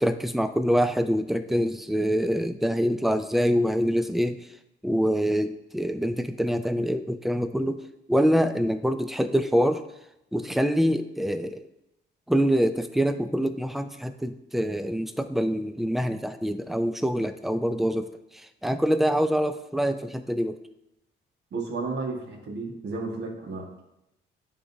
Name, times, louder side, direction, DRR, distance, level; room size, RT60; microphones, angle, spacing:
voice 1, 0.0-4.4 4.8-7.8 8.1-9.8 10.3-11.6 12.3-20.6, equal, ahead, 10 dB, 0.4 m, -25 dB
voice 2, 21.5-23.8, right 3 dB, 60° right, 0 dB, 1.6 m, -33 dB
9.8 x 3.7 x 2.7 m, 0.86 s
cardioid pair, 90°, 20 cm